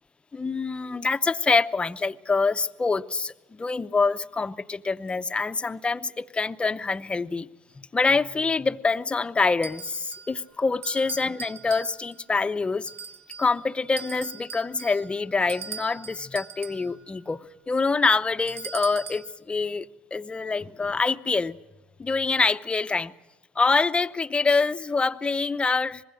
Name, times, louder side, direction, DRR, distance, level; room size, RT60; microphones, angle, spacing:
voice 1, 0.3-7.5 7.8-12.9 13.4-21.6 22.0-23.1 23.6-26.0, left 4 dB, 20° left, 0.7 m, -25 dB
sound 1, 9.6-10.4 10.8-12.2 12.9-13.6 14.0-16.9 18.5-19.3, right 6 dB, 50° right, 0.9 m, -41 dB
25.0 x 21.0 x 6.5 m
hypercardioid pair, 80°, 5 cm